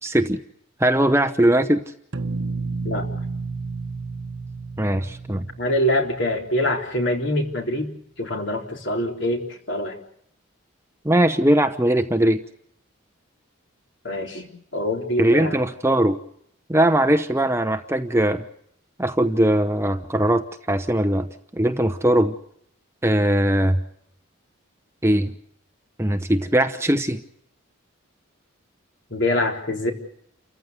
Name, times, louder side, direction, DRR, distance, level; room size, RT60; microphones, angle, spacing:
voice 1, 0.0-0.4 0.8-1.8 4.8-5.5 11.0-12.4 15.2-16.2 16.7-18.4 19.0-22.3 23.0-23.8 25.0-25.3 26.0-27.2, right 1 dB, 15° right, 8 dB, 0.8 m, -20 dB
sound 1, 2.1-7.0, right 3 dB, 60° right, 1.2 m, -32 dB
voice 2, 5.6-7.9 8.2-10.0 14.0-15.6 29.1-29.9, left 1 dB, 55° left, 2 dB, 3.9 m, -24 dB
29.0 x 15.0 x 8.1 m, 0.72 s
head